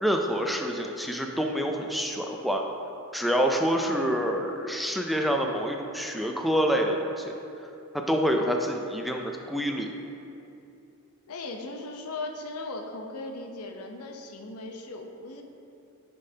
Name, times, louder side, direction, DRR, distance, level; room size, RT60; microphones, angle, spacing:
voice 1, 0.0-2.6 3.1-7.3 7.9-9.9, equal, ahead, 2 dB, 0.4 m, -27 dB
voice 2, 11.3-15.4, left 2 dB, 90° left, 3 dB, 0.7 m, -38 dB
9.8 x 5.4 x 2.8 m, 2.8 s
head